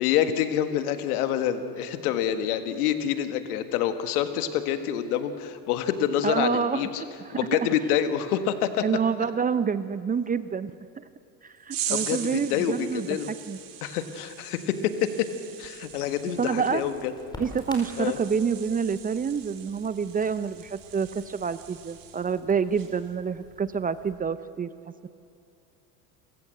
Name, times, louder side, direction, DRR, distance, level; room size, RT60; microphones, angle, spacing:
voice 1, 0.0-7.0 7.3-8.8 11.9-13.3 13.8-15.3 15.6-17.1 18.0-18.2, left 10 dB, 80° left, 9 dB, 1.7 m, -27 dB
voice 2, 6.2-6.8 8.8-11.0 11.4-13.1 13.5-13.6 16.4-16.8 17.4-24.7, right 6 dB, 20° right, 14 dB, 0.6 m, -27 dB
sound 1, 11.7-22.4 22.7-23.1, right 10 dB, 45° right, 2.5 m, -40 dB
Crackle, 15.9-24.1, equal, 10° left, 4.7 m, -49 dB
28.0 x 15.5 x 8.0 m, 2.6 s
supercardioid pair, 95°, 44 cm